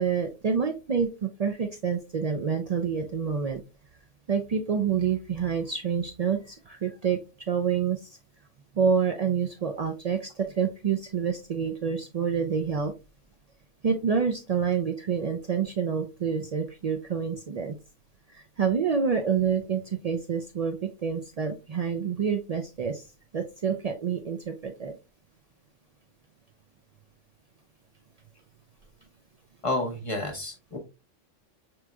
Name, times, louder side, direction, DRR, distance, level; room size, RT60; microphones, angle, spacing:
voice 1, 0.0-3.6 4.3-7.2 7.5-8.1 8.7-12.9 13.8-17.8 18.3-23.1 23.3-24.9, right 6 dB, 90° right, 4 dB, 0.3 m, -27 dB
voice 2, 29.6-30.8, left 2 dB, 30° left, 2 dB, 0.9 m, -30 dB
6.1 x 3.0 x 2.3 m, 0.29 s
omnidirectional pair, 1.3 m